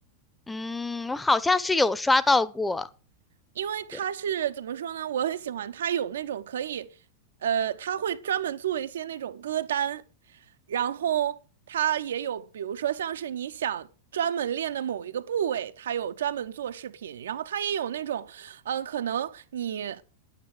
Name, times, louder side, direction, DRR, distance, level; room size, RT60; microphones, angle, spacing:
voice 1, 0.5-2.9, left 3 dB, 10° left, 1.0 m, -24 dB
voice 2, 3.6-6.9 7.4-10.0 10.7-11.4 11.7-13.9 14.1-20.0, right 9 dB, 65° right, 0.8 m, -30 dB
10.0 x 9.1 x 6.5 m
figure-of-eight pair, 90°, 0 cm